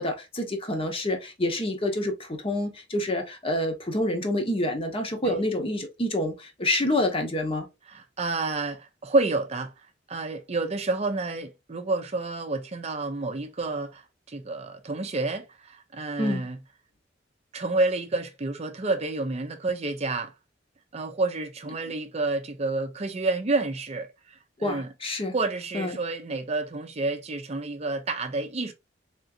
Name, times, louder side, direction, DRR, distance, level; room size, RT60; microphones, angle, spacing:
voice 1, 0.0-7.7 16.2-16.5 24.6-25.3 25.7-26.0, left 1 dB, 30° left, 1.0 m, -27 dB
voice 2, 7.9-9.7 10.1-14.0 14.3-16.6 17.5-20.3 20.9-24.9 25.3-28.7, right 3 dB, 35° right, 0.5 m, -29 dB
3.8 x 3.6 x 2.6 m
head